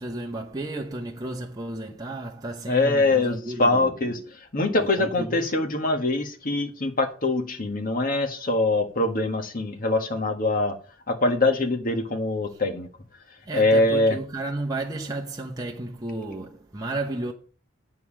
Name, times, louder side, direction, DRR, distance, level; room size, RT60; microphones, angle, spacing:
voice 1, 0.0-3.9 5.0-5.4 13.4-17.3, right 2 dB, 20° right, 0.9 m, -33 dB
voice 2, 2.7-4.2 4.5-10.7 11.1-12.9 13.5-14.2, left 2 dB, 45° left, 1.6 m, -23 dB
9.5 x 4.7 x 7.3 m
head